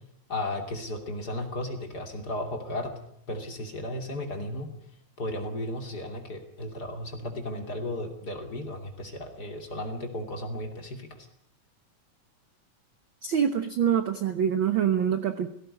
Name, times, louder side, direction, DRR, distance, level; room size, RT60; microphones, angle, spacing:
voice 1, 0.3-3.0 3.3-4.7 5.2-11.3, left 1 dB, 30° left, 4 dB, 3.0 m, -34 dB
voice 2, 13.2-15.5, right 8 dB, 65° right, 9 dB, 1.2 m, -25 dB
18.0 x 17.0 x 9.8 m, 0.71 s
omnidirectional pair, 3.7 m